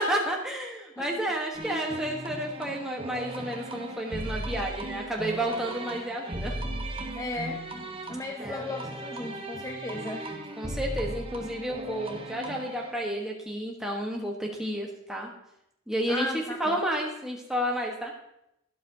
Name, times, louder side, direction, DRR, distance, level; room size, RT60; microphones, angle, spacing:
voice 1, 0.0-6.5 8.4-8.7 10.6-15.3 15.9-18.1, equal, 5° right, -1 dB, 1.2 m, -31 dB
sound 1, 1.5-13.0, right 1 dB, 25° right, 1.0 m, -37 dB
voice 2, 7.1-7.6 8.1-10.3 16.1-16.8, left 2 dB, 15° left, 3 dB, 0.5 m, -35 dB
12.5 x 12.0 x 2.8 m, 0.81 s
head